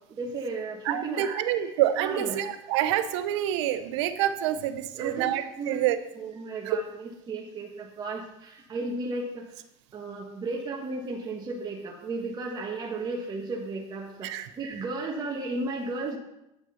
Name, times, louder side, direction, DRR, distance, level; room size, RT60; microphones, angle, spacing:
voice 1, 0.1-2.5 4.9-5.8 6.2-9.6 9.9-16.2, right 3 dB, 30° right, -2 dB, 1.4 m, -34 dB
voice 2, 0.9-6.0 6.7-6.8 14.2-14.5, right 12 dB, 90° right, 11 dB, 0.8 m, -27 dB
9.0 x 6.0 x 5.6 m, 0.87 s
supercardioid pair, 125°, 14 cm